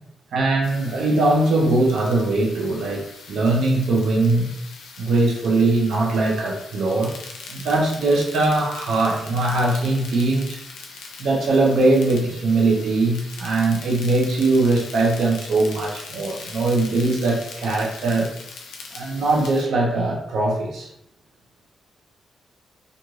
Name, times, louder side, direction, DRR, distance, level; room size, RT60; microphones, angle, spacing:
voice 1, 0.3-3.0 3.3-4.5 5.0-7.1 7.5-10.6 11.2-18.3 18.9-20.9, right 2 dB, 75° right, -1 dB, 0.7 m, -21 dB
sound 1, 0.6-19.6, left 4 dB, 85° left, 0.4 m, -41 dB
2.5 x 2.4 x 3.1 m, 0.78 s
supercardioid pair, 50°, 0 cm